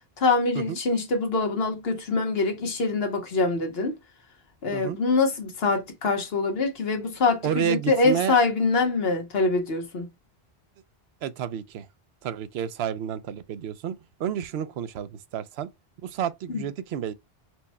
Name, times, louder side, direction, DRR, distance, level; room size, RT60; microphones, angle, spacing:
voice 1, 0.2-3.9 4.6-10.1 16.5-16.7, left 3 dB, 70° left, 1.3 m, -24 dB
voice 2, 7.4-8.4 11.2-11.9 12.2-15.7 16.0-17.1, right 9 dB, 80° right, 0.8 m, -30 dB
4.5 x 2.1 x 4.2 m
omnidirectional pair, 1.1 m